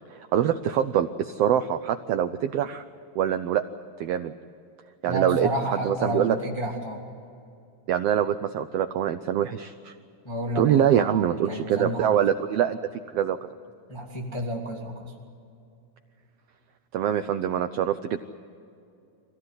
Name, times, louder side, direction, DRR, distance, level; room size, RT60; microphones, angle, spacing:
voice 1, 0.1-2.8 3.1-3.6 4.0-4.3 5.0-6.4 7.9-9.9 10.5-12.8 13.1-13.4 16.9-18.2, right 10 dB, 85° right, 10 dB, 1.4 m, -24 dB
voice 2, 5.1-7.1 10.2-12.1 13.9-15.1, right 1 dB, 10° left, -1 dB, 2.1 m, -31 dB
25.0 x 17.0 x 9.7 m, 2.6 s
omnidirectional pair, 3.6 m